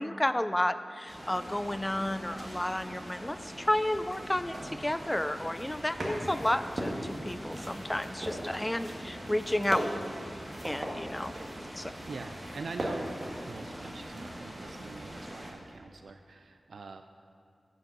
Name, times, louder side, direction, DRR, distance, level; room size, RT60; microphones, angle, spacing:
voice 1, 0.0-9.9 10.6-11.3 11.8-11.9, left 1 dB, 15° left, 12 dB, 0.4 m, -31 dB
sound 1, 1.1-15.5, equal, 25° right, 1.6 m, -44 dB
sound 2, 5.3-14.1 14.8-15.3, right 1 dB, 45° right, 1.7 m, -39 dB
voice 2, 11.8-13.1 13.4-17.0, right 4 dB, 80° right, 7 dB, 0.3 m, -44 dB
9.1 x 5.3 x 7.2 m, 2.4 s
wide cardioid pair, 95°, 0 cm